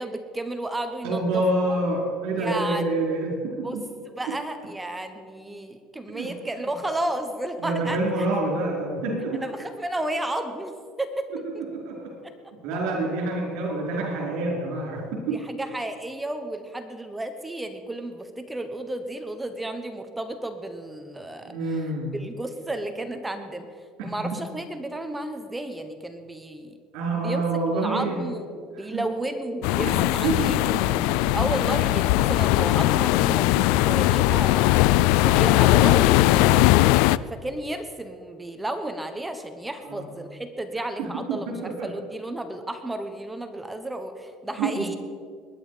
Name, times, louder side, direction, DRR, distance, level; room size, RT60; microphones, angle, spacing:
voice 1, 0.0-1.4 1.7-1.8 2.4-2.8 3.5-3.8 4.1-8.3 9.3-11.3 11.5-11.6 12.2-12.3 15.3-21.8 22.1-23.7 24.0-26.8 27.1-27.4 27.7-30.7 31.1-34.9 35.1-36.0 37.3-45.0, right 1 dB, 10° right, 8 dB, 1.0 m, -32 dB
voice 2, 1.0-3.3 3.6-3.8 6.1-6.3 7.6-9.4 11.6-12.1 12.6-15.4 21.4-22.1 24.2-24.3 26.9-28.2 28.8-29.0 29.8-29.9 30.2-30.9 31.3-31.4 36.3-36.7 39.9-40.0 41.0-41.9 44.6-44.8, right 2 dB, 75° right, -2 dB, 4.8 m, -27 dB
sound 1, 29.6-37.2, left 17 dB, 75° left, 0.3 m, -19 dB
20.5 x 11.0 x 5.1 m, 2.1 s
cardioid pair, 125°, 0 cm